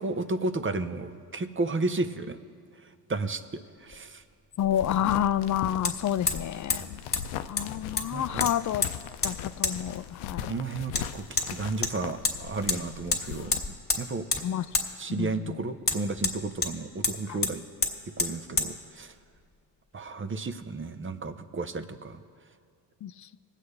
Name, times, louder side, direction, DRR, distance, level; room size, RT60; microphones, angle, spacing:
voice 1, 0.0-2.4 2.8-4.2 6.8-6.9 8.1-8.5 10.5-14.3 14.9-17.6 18.2-19.1 19.9-22.2, right 3 dB, 25° right, 11 dB, 0.9 m, -33 dB
Hammer, 3.9-4.0 5.9-6.0 6.3-6.5 6.7-6.8 7.1-7.2 7.6-8.1 8.4-8.9 9.2-9.3 9.6-9.8 11.0-11.1 11.4-11.5 11.8-12.4 12.7-12.8 13.1-13.2 13.5-14.0 14.3-14.4 14.7-14.9 15.8-16.7 17.0-17.2 17.4-17.5 17.8-17.9 18.2-18.3 18.6-18.7, left 4 dB, 20° left, 2.1 m, -27 dB
sound 1, 4.6-13.6, left 10 dB, 80° left, 0.6 m, -39 dB
voice 2, 4.6-7.0 7.5-8.8 9.2-10.5 14.4-14.7 15.2-15.6 17.3-17.4 23.0-23.3, left 10 dB, 40° left, 15 dB, 0.5 m, -29 dB
21.0 x 8.3 x 3.4 m, 2.3 s
hypercardioid pair, 60°, 48 cm